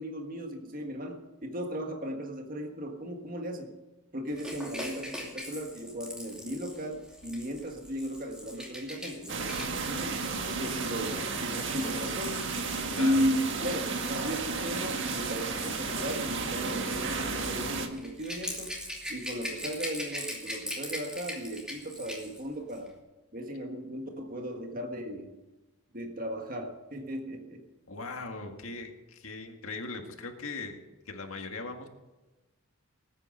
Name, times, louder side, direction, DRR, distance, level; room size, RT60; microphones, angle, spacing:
voice 1, 0.0-3.7 4.1-10.3 10.6-12.4 12.9-18.7 19.1-22.9 23.3-25.3 25.9-27.6, equal, 40° right, 3 dB, 1.6 m, -35 dB
Rattle / Rattle (instrument), 4.3-13.4 14.3-22.4 22.7-22.9, equal, 5° right, 2.6 m, -42 dB
sound 1, 9.3-17.9, right 4 dB, 55° right, 1.6 m, -33 dB
voice 2, 13.0-13.3 27.9-30.8 31.1-31.9, left 3 dB, 75° left, 4 dB, 1.9 m, -39 dB
19.0 x 8.9 x 6.6 m, 1.1 s
head